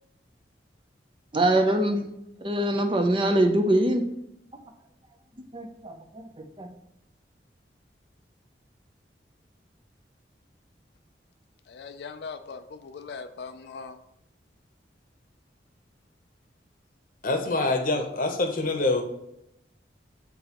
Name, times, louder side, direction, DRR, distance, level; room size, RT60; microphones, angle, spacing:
voice 1, 1.3-2.0 2.4-4.0 5.5-6.7, right 1 dB, 30° right, 5 dB, 0.6 m, -24 dB
voice 2, 11.7-14.0, left 5 dB, 65° left, 8 dB, 0.4 m, -40 dB
voice 3, 17.2-19.0, left 2 dB, 50° left, 5 dB, 0.8 m, -25 dB
8.3 x 3.8 x 3.0 m, 0.82 s
head